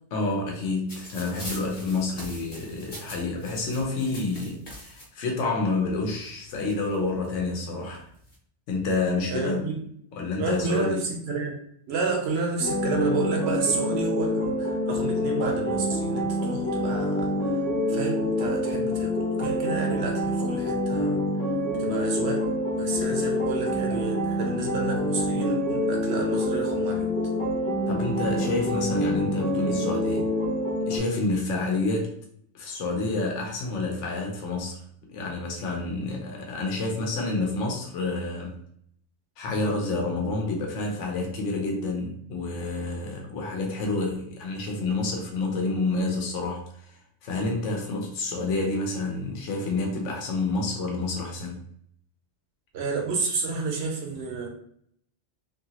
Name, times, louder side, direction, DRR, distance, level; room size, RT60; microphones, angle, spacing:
voice 1, 0.1-8.1 8.7-9.7 10.1-11.0 27.9-30.3 30.8-32.1 32.5-34.8 35.1-38.6 39.4-47.0 47.2-51.6, left 3 dB, 85° left, 0 dB, 1.0 m, -29 dB
sound 1, 0.9-5.0 6.0-6.1 6.3-7.3 8.0-8.3, left 1 dB, 45° left, 0.9 m, -42 dB
voice 2, 9.3-9.8 10.4-11.6 11.9-17.6 17.9-19.1 19.4-21.2 21.8-22.4 22.8-27.0 52.7-54.5, right 4 dB, 65° right, 1 dB, 1.0 m, -30 dB
sound 2, 12.6-31.0, left 1 dB, 20° left, 0.4 m, -26 dB
2.8 x 2.6 x 2.8 m, 0.65 s
omnidirectional pair, 1.2 m